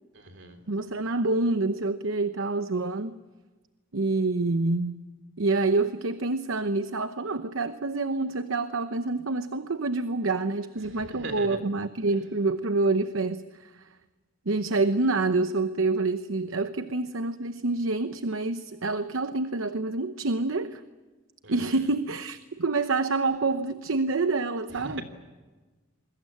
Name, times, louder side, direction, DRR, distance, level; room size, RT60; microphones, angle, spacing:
voice 1, 0.1-0.6 10.8-11.6 21.4-21.8 24.7-25.0, right 2 dB, 60° right, 3.3 m, -40 dB
voice 2, 0.7-3.2 3.9-5.0 5.4-13.9 14.5-20.8 21.5-25.0, right 3 dB, 75° right, 0.9 m, -27 dB
28.0 x 21.5 x 8.7 m
head